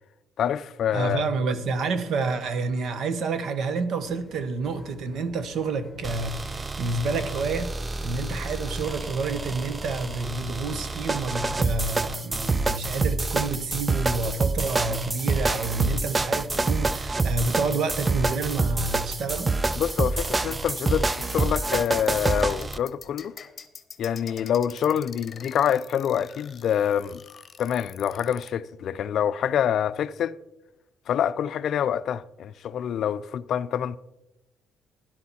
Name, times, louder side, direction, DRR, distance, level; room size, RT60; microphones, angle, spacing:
voice 1, 0.4-1.2 19.8-23.4 24.0-27.2 27.6-30.4 31.1-34.0, left 9 dB, 60° left, 0.4 m, -26 dB
voice 2, 0.9-7.7 8.0-19.5, right 4 dB, 60° right, 1.2 m, -29 dB
sound 1, 4.0-11.4, left 2 dB, 10° left, 1.9 m, -49 dB
sound 2, 6.0-22.8, right 3 dB, 20° right, 0.4 m, -27 dB
sound 3, 21.7-28.5, left 7 dB, 40° left, 1.1 m, -45 dB
12.5 x 11.0 x 4.3 m
cardioid pair, 125°, 0 cm